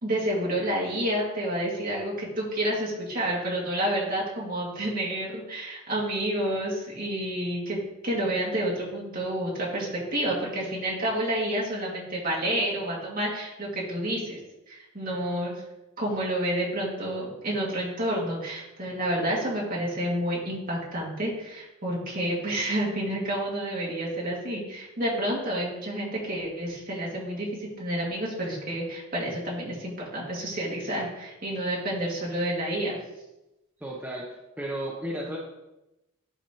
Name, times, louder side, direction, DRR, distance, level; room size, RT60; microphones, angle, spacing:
voice 1, 0.0-7.8 8.0-14.4 14.7-15.5 16.0-33.0, right 1 dB, 40° right, -5 dB, 2.2 m, -29 dB
voice 2, 33.8-34.3 34.6-35.4, right 1 dB, 5° right, -4 dB, 0.7 m, -33 dB
11.5 x 4.1 x 3.0 m, 0.96 s
head